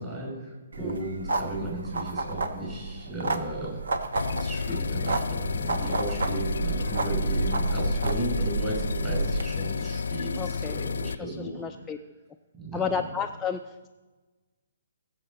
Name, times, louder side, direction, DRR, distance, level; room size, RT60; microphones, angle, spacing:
voice 1, 0.0-3.8 4.3-11.6 12.6-13.0, right 1 dB, 15° right, -4 dB, 5.2 m, -35 dB
sound 1, 0.7-9.4, right 3 dB, 85° right, 1.2 m, -31 dB
sound 2, 4.2-11.2, left 5 dB, 80° left, 0.4 m, -31 dB
voice 2, 10.4-10.8 11.4-12.0 12.7-13.9, left 6 dB, 10° left, 4 dB, 0.3 m, -32 dB
18.5 x 7.3 x 5.1 m, 1.3 s
hypercardioid pair, 165°, 0 cm